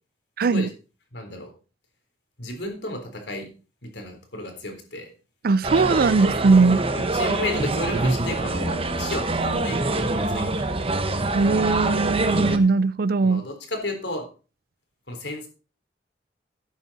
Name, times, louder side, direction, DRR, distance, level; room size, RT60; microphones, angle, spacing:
voice 1, 0.4-0.7 5.4-6.9 11.3-13.4, right 4 dB, 55° right, 0.5 m, -20 dB
voice 2, 1.1-1.5 2.4-3.5 3.8-5.1 6.9-9.8 10.1-10.9 13.2-14.2 15.1-15.5, left 1 dB, 70° left, 3.8 m, -33 dB
sound 1, 5.6-12.6, right 2 dB, 35° right, 1.1 m, -25 dB
12.0 x 9.1 x 4.2 m
head